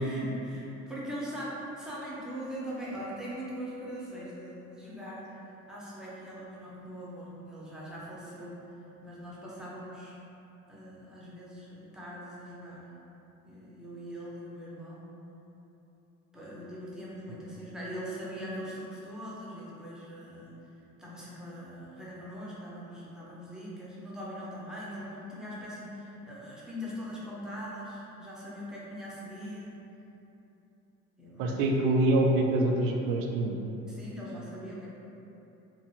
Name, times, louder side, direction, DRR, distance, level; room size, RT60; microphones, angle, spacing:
voice 1, 0.0-5.3 5.7-8.6 9.0-10.2 10.7-12.9 13.5-15.0 16.3-20.6 21.0-29.7 31.2-31.7 33.9-34.9, equal, ahead, -7 dB, 0.6 m, -41 dB
voice 2, 31.4-33.6, right 1 dB, 55° right, 1 dB, 0.5 m, -25 dB
3.0 x 2.5 x 2.4 m, 3.0 s
figure-of-eight pair, 55°, 43 cm